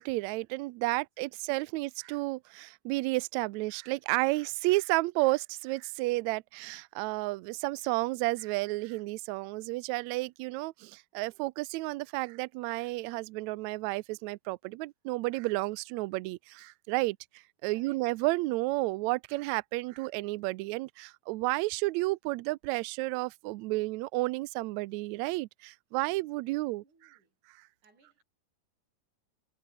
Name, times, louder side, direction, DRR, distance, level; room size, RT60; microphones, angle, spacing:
voice 1, 0.0-26.8, right 22 dB, 90° right, 1.6 m, -32 dB
voice 2, 0.9-1.4 1.7-1.8 17.7-18.0 26.1-27.4 27.8-28.2, right 3 dB, 60° right, 8.9 m, -66 dB
omnidirectional pair, 3.9 m